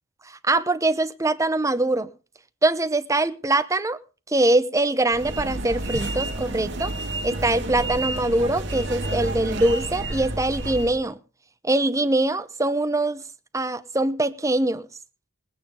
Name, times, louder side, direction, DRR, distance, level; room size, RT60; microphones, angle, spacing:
voice 1, 0.2-2.1 2.6-4.0 4.3-6.9 7.2-11.2 11.6-13.2 13.5-14.9, right 2 dB, 15° right, 0.8 m, -23 dB
sound 1, 5.1-11.0, right 2 dB, 55° right, 1.7 m, -30 dB
19.0 x 8.9 x 5.2 m
head